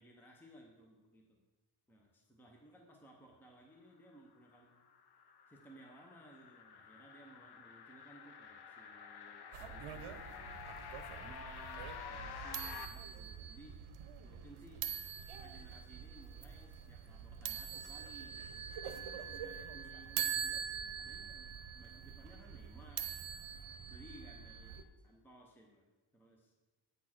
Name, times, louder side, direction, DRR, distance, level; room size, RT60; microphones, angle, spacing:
voice 1, 0.0-1.4 1.9-4.9 5.5-10.6 11.1-13.8 14.2-14.8 15.3-21.5 21.7-23.1 23.9-26.5, right 1 dB, 5° left, 1 dB, 0.7 m, -59 dB
sound 1, 4.5-12.9, left 6 dB, 50° left, 0.6 m, -50 dB
sound 2, 9.5-24.8, right 8 dB, 85° right, 0.7 m, -44 dB
8.4 x 4.4 x 5.9 m, 1.2 s
wide cardioid pair, 170°, 49 cm